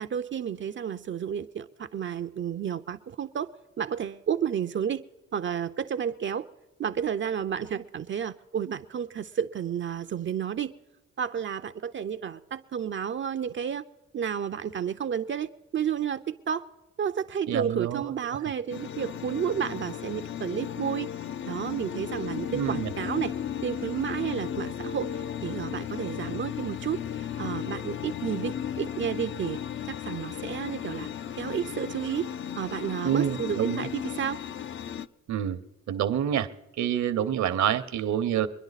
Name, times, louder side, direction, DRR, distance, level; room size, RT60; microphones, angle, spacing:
voice 1, 0.0-3.5 3.8-5.0 5.3-6.5 6.8-10.7 11.2-13.8 14.1-16.7 17.0-21.1 21.4-23.3 23.6-29.6 29.9-31.1 31.4-32.3 32.6-34.4, right 8 dB, 40° right, 9 dB, 0.5 m, -31 dB
voice 2, 17.5-18.0 22.5-22.9 33.0-33.9 35.3-35.6 35.9-36.5 36.8-38.5, right 9 dB, 65° right, 12 dB, 0.9 m, -27 dB
sound 1, 18.7-35.1, left 9 dB, 40° left, 0.4 m, -35 dB
24.0 x 10.5 x 4.1 m, 1.0 s
cardioid pair, 90°, 30 cm